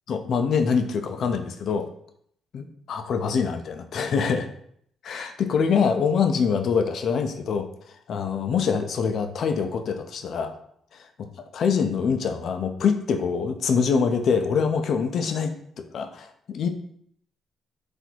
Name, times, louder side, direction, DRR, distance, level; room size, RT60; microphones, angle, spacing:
voice 1, 0.1-1.9 2.5-4.5 5.0-7.7 8.1-10.5 11.5-16.7, left 6 dB, 65° left, 6 dB, 0.5 m, -24 dB
4.1 x 2.6 x 4.4 m, 0.68 s
cardioid pair, 90°, 0 cm